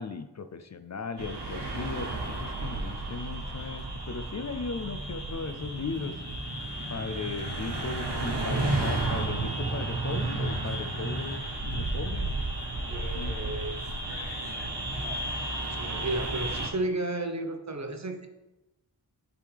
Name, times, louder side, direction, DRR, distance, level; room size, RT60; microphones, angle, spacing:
voice 1, 0.0-6.2 6.9-11.4 11.6-12.3 12.8-13.6, left 5 dB, 45° left, 9 dB, 0.5 m, -37 dB
sound 1, 1.2-16.7, right 2 dB, 80° right, 1.3 m, -32 dB
voice 2, 12.9-13.8 15.0-15.2 15.8-18.3, right 2 dB, 40° right, 6 dB, 0.9 m, -33 dB
9.5 x 3.7 x 3.4 m, 1.0 s
cardioid pair, 45°, 41 cm